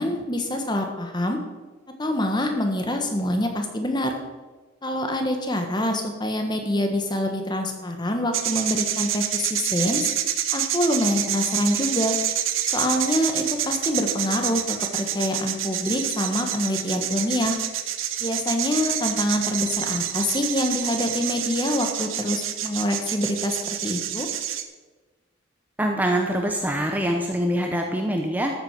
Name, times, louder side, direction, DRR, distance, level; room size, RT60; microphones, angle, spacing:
voice 1, 0.0-1.4 2.0-4.2 4.8-10.1 10.5-12.1 12.7-17.6 18.2-24.3, left 1 dB, 20° left, 4 dB, 1.4 m, -25 dB
sound 1, 8.3-24.6, right 10 dB, 85° right, 1.0 m, -27 dB
voice 2, 25.8-28.6, right 1 dB, 10° right, 2 dB, 0.8 m, -24 dB
13.0 x 7.7 x 6.0 m, 1.3 s
head